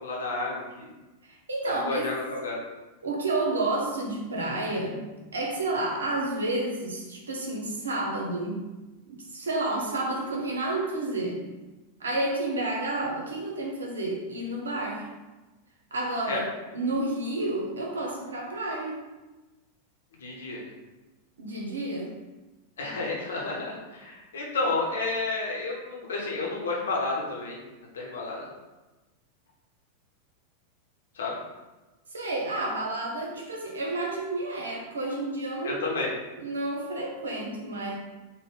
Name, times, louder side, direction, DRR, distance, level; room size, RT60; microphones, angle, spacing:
voice 1, 0.0-0.9 1.8-2.6 16.3-16.4 20.2-20.7 22.8-27.6 27.9-28.5 31.2-31.3 35.6-36.1, left 3 dB, 65° left, -2 dB, 0.8 m, -31 dB
voice 2, 1.2-2.1 3.0-5.0 5.3-8.7 9.1-11.4 12.0-15.1 15.9-19.0 21.4-22.1 32.1-38.0, right 2 dB, 70° right, -1 dB, 0.7 m, -30 dB
3.5 x 2.1 x 3.8 m, 1.1 s
figure-of-eight pair, 90°, 0 cm